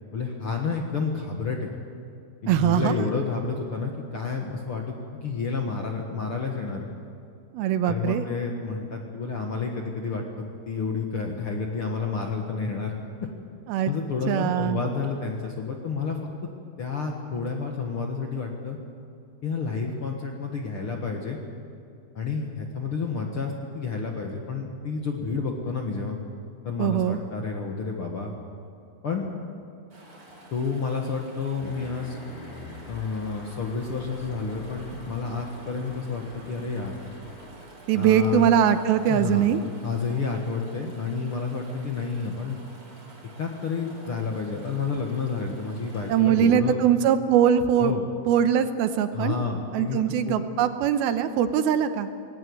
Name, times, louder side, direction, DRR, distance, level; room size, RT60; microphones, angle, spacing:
voice 1, 0.1-1.7 2.4-6.9 7.8-12.9 13.8-16.2 16.8-18.8 19.4-21.4 22.1-26.2 26.6-28.3 29.0-29.3 30.5-32.2 32.9-36.9 37.9-38.5 39.1-39.5 39.8-42.6 43.4-46.8 47.8-48.0 49.1-50.4, left 4 dB, 50° left, 1 dB, 1.6 m, -30 dB
voice 2, 2.5-3.0 7.5-8.2 13.7-13.9 14.3-14.8 26.8-27.2 37.9-39.6 46.1-47.9 48.3-49.4 49.7-52.1, right 9 dB, 80° right, 10 dB, 2.7 m, -22 dB
Chatter / Stream, 29.9-46.2, right 2 dB, 40° right, 4.9 m, -49 dB
sound 1, 31.6-37.5, left 2 dB, 90° left, 5.2 m, -45 dB
19.5 x 17.5 x 9.6 m, 2.5 s
omnidirectional pair, 4.5 m